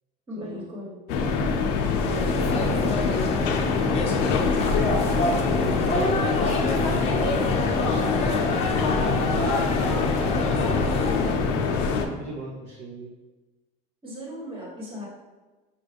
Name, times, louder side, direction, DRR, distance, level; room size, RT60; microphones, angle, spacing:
voice 1, 0.3-1.0 14.0-15.1, left 1 dB, 25° right, -4 dB, 1.2 m, -37 dB
sound 1, 1.1-12.1, left 5 dB, 70° left, 0.6 m, -25 dB
sound 2, 2.0-11.4, left 2 dB, 35° left, 0.7 m, -27 dB
voice 2, 2.1-4.9 5.2-6.8 7.1-8.4 8.8-10.1 10.5-11.5 12.2-13.1, right 2 dB, 50° right, -3 dB, 0.7 m, -40 dB
5.7 x 2.3 x 3.4 m, 1.2 s
cardioid pair, 130°, 20 cm